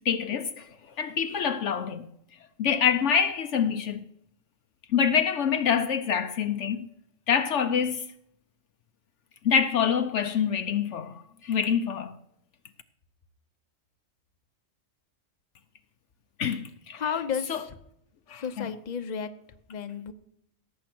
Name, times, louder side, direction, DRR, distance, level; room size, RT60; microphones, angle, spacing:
voice 1, 0.1-0.5 1.0-2.0 2.6-4.0 4.9-6.9 7.3-8.0 9.4-11.1 11.5-12.1 16.4-16.7 17.5-17.6 18.3-18.6, left 7 dB, 65° left, 1.0 m, -25 dB
voice 2, 16.9-17.8 18.3-19.3 19.7-20.1, left 7 dB, 40° left, 0.9 m, -32 dB
17.0 x 7.6 x 6.0 m
omnidirectional pair, 1.4 m